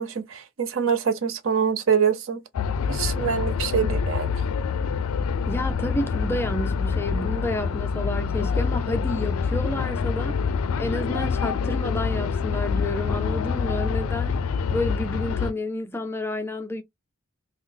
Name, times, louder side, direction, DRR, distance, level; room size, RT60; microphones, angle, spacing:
voice 1, 0.0-2.4 2.9-4.3, right 7 dB, 65° right, 0.6 m, -24 dB
sound 1, 2.5-15.5, left 5 dB, 80° left, 0.4 m, -26 dB
voice 2, 5.5-10.4 10.8-16.8, left 1 dB, 10° left, 0.4 m, -30 dB
3.6 x 2.0 x 3.3 m
head